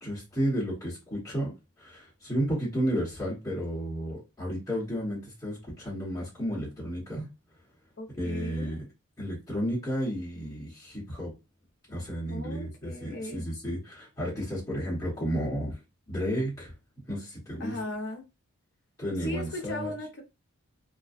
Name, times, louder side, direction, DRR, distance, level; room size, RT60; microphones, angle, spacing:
voice 1, 0.0-7.3 8.1-8.8 9.2-11.3 11.9-15.8 16.1-16.7 17.1-17.8 19.0-19.9, equal, 15° left, 0.9 m, -32 dB
voice 2, 8.0-8.8 12.3-13.5 17.6-18.2 19.2-20.2, left 1 dB, 50° left, 0.7 m, -37 dB
2.5 x 2.2 x 2.4 m
head